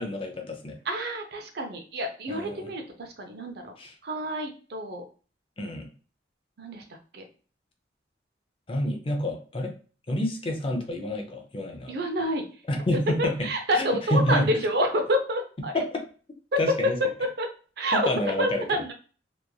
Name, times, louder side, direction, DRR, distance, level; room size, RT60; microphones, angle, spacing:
voice 1, 0.0-0.8 2.3-2.7 3.8-3.9 5.6-5.9 8.7-9.7 10.1-11.9 12.7-13.5 13.7-14.5 15.7-15.8 16.6-17.0 17.9-18.8, left 1 dB, 30° left, 3 dB, 0.5 m, -28 dB
voice 2, 0.9-3.7 4.0-5.0 6.6-6.8 7.1-7.2 11.9-12.4 13.2-15.8 16.5-16.6 17.4-17.5 17.8-18.1 18.4-18.9, equal, 60° right, 4 dB, 0.6 m, -28 dB
2.9 x 2.5 x 2.2 m, 0.39 s
head